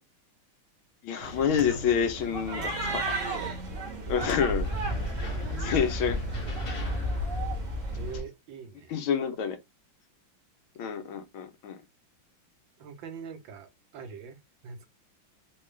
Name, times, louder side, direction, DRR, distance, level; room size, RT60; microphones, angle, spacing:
voice 1, 1.0-3.1 4.1-4.7 5.6-6.2 8.9-9.6 10.8-11.8, left 7 dB, 85° left, 1.6 m, -28 dB
sound 1, 1.2-8.2, right 1 dB, 50° right, 1.1 m, -34 dB
sound 2, 4.6-8.3, equal, 40° left, 0.8 m, -34 dB
voice 2, 5.4-5.8 7.1-7.3 7.9-8.9 12.8-14.9, right 6 dB, 70° right, 1.5 m, -43 dB
4.0 x 2.3 x 3.2 m
omnidirectional pair, 2.2 m